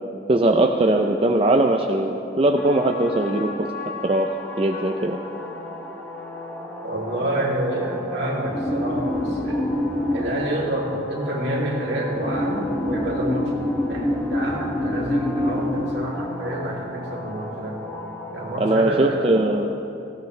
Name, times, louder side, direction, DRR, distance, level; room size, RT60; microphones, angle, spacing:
voice 1, 0.3-3.7 4.0-4.3 4.6-5.2 18.6-19.7, right 1 dB, 30° right, 3 dB, 0.5 m, -20 dB
sound 1, 2.6-18.8, left 1 dB, 10° left, 1.5 m, -29 dB
voice 2, 6.8-9.7 10.1-17.8 18.3-19.5, right 1 dB, 65° right, -4 dB, 2.9 m, -28 dB
18.5 x 15.5 x 3.3 m, 2.8 s
head